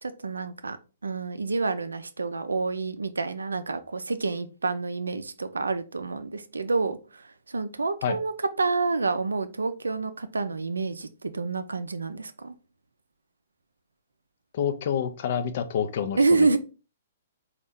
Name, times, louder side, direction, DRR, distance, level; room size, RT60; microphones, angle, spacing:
voice 1, 0.0-0.8 1.0-8.3 8.6-12.5 16.2-16.6, right 3 dB, 85° right, 0.4 m, -28 dB
voice 2, 14.5-16.5, left 8 dB, 55° left, 0.6 m, -28 dB
4.2 x 2.4 x 3.5 m
hypercardioid pair, 125°, 0 cm